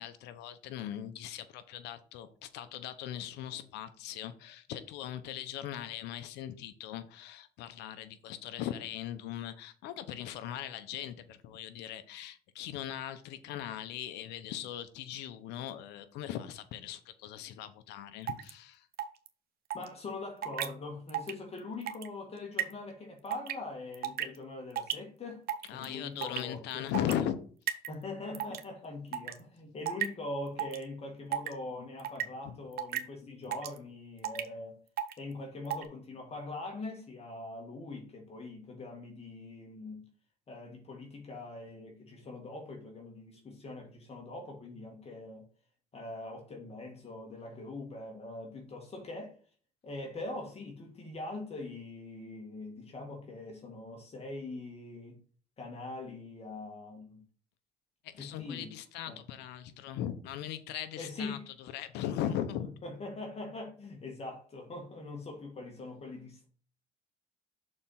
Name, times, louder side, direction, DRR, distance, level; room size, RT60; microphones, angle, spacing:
voice 1, 0.0-18.9 25.7-27.4 32.4-32.5 58.0-62.7, left 11 dB, 90° left, 0.9 m, -39 dB
sound 1, 18.3-18.5 19.0-19.3 19.7-19.9 20.4-20.7 21.1-21.3 21.6-22.1 22.6-22.7 23.3-23.5 23.9-24.4 24.8-24.9 25.5-25.9 26.2-26.4 26.9-27.1 27.7-27.9 28.3-28.6 29.1-29.3 29.9-30.1 30.6-30.8 31.3-31.5 32.0-32.2 32.8-33.0 33.5-33.8 34.2-34.5 35.0-35.1 35.7-35.8, right 11 dB, 65° right, 0.9 m, -33 dB
voice 2, 19.7-25.4 25.7-26.9 27.9-34.8 35.2-40.1 40.5-45.5 45.9-49.4 49.8-55.2 55.6-57.2 58.1-58.7 59.1-59.2 61.0-61.5 62.3-66.5, left 2 dB, 35° left, 2.1 m, -42 dB
6.7 x 4.4 x 5.9 m
cardioid pair, 110°, 17 cm